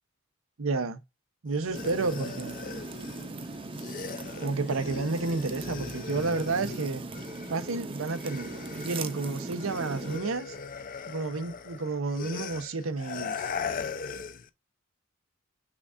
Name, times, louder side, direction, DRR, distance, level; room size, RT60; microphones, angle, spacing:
voice 1, 0.6-1.0 1.4-2.6 4.4-7.0 7.5-10.5 11.1-13.5, right 3 dB, 90° right, 0.7 m, -31 dB
sound 1, 1.5-7.7 8.0-14.5, left 5 dB, 45° left, 0.5 m, -40 dB
sound 2, 1.7-10.2, right 3 dB, 25° right, 0.6 m, -39 dB
5.8 x 2.4 x 3.7 m
head